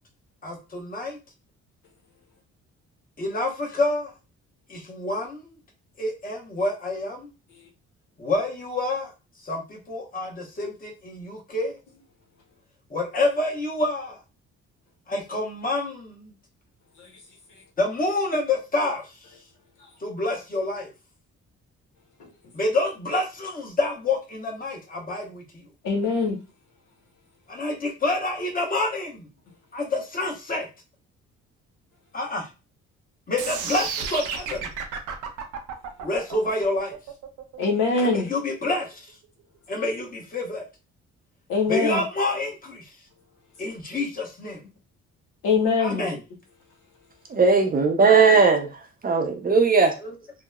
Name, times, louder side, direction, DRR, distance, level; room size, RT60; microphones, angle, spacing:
voice 1, 0.4-1.2 3.2-4.1 4.7-5.4 6.0-7.3 8.2-9.1 9.4-11.8 12.9-14.2 15.1-16.3 17.8-19.1 20.0-20.9 22.5-25.6 27.5-29.3 29.7-30.7 32.1-32.5 33.3-34.7 36.0-36.9 38.0-39.0 39.7-40.6 41.7-42.9 43.6-44.6 45.8-46.2, left 2 dB, 30° left, 1.0 m, -27 dB
voice 2, 25.8-26.4 37.6-38.3 41.5-42.0 45.4-46.1, left 4 dB, 80° left, 0.8 m, -23 dB
sound 1, 33.4-39.4, right 6 dB, 80° right, 0.6 m, -33 dB
voice 3, 47.3-48.7 49.0-49.9, right 4 dB, 30° right, 0.5 m, -17 dB
2.9 x 2.0 x 2.3 m
cardioid pair, 90°, 30 cm